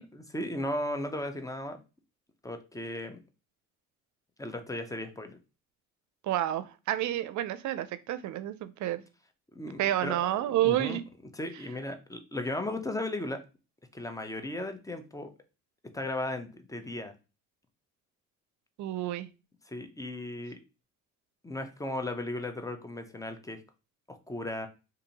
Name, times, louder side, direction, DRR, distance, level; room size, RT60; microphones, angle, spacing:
voice 1, 0.1-1.8 2.4-3.2 4.4-5.4 9.5-10.2 10.5-11.0 11.3-13.4 13.9-15.3 15.9-17.1 19.7-20.6 21.4-23.6 24.1-24.7, left 1 dB, 10° left, 7 dB, 0.6 m, -36 dB
voice 2, 6.2-9.0 9.8-11.0 18.8-19.3, right 13 dB, 75° right, 14 dB, 0.5 m, -29 dB
2.7 x 2.7 x 4.0 m, 0.30 s
cardioid pair, 90°, 30 cm